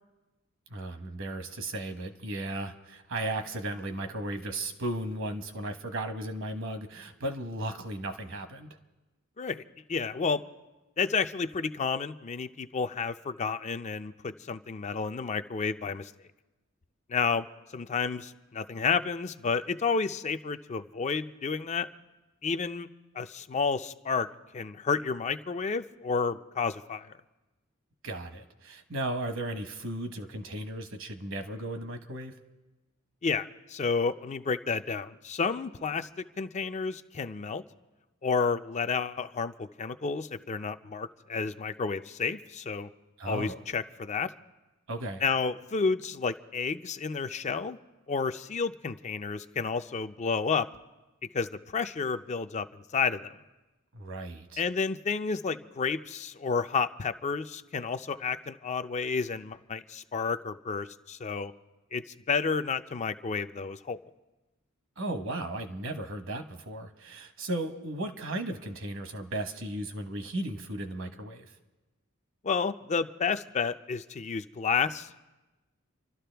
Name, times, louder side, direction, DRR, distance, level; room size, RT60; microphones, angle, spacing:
voice 1, 0.7-8.8 28.0-32.3 43.2-43.6 44.9-45.2 53.9-54.6 65.0-71.5, right 1 dB, 65° right, 7 dB, 1.2 m, -35 dB
voice 2, 9.9-10.4 11.0-16.1 17.1-17.5 17.7-21.9 22.4-22.9 23.1-24.3 24.5-27.1 33.2-36.1 36.4-37.6 38.2-42.9 43.2-44.3 45.2-47.8 48.1-50.7 51.3-53.3 54.6-61.5 61.9-64.0 72.4-75.2, left 5 dB, 35° left, 10 dB, 0.4 m, -31 dB
29.0 x 12.5 x 3.4 m, 1.1 s
head